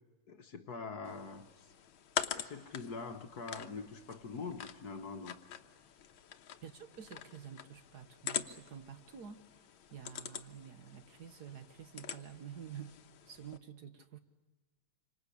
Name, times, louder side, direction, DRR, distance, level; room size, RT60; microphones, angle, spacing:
voice 1, 0.3-1.6 2.2-5.3, left 4 dB, 50° left, 1.6 m, -44 dB
sound 1, 1.1-13.6, left 9 dB, 75° left, 1.8 m, -45 dB
voice 2, 6.6-13.0 13.3-14.2, right 8 dB, 55° right, 1.7 m, -49 dB
27.0 x 25.0 x 8.5 m
omnidirectional pair, 2.3 m